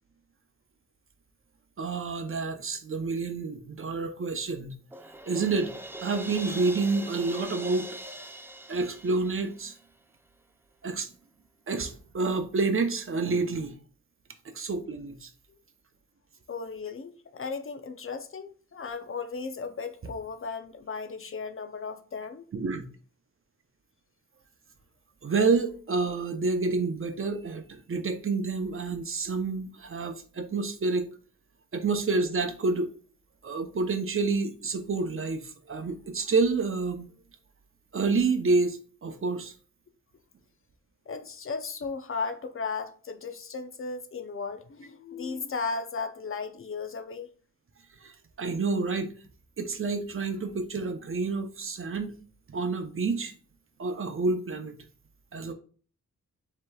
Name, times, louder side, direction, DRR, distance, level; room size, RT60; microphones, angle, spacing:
voice 1, 1.8-4.8 5.3-5.7 6.0-7.9 8.1-8.2 8.7-9.7 10.8-11.1 11.7-13.7 14.5-15.3 22.5-22.9 25.2-31.1 31.7-32.9 33.4-37.1 37.9-39.5 48.0-49.1 49.6-52.2 52.5-53.3 53.8-54.7 55.3-55.5, right 4 dB, 45° right, 0.7 m, -28 dB
Crash cymbal, 4.9-9.8, right 1 dB, 5° right, 0.4 m, -42 dB
voice 2, 16.5-22.5 41.1-47.3, left 4 dB, 45° left, 0.5 m, -36 dB
7.6 x 2.9 x 2.3 m
wide cardioid pair, 90°, 31 cm